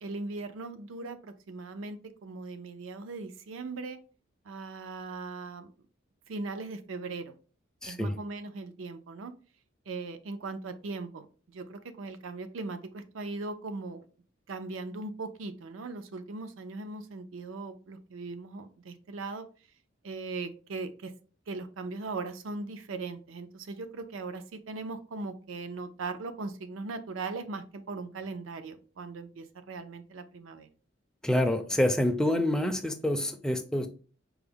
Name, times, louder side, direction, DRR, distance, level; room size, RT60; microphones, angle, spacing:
voice 1, 0.0-4.0 4.4-5.7 6.3-7.3 7.9-9.3 9.9-14.0 14.5-19.5 20.0-21.1 21.5-30.7, right 3 dB, 85° right, 0.5 m, -39 dB
voice 2, 7.8-8.1 31.2-33.9, left 1 dB, 5° left, 0.4 m, -27 dB
4.6 x 2.0 x 3.4 m
head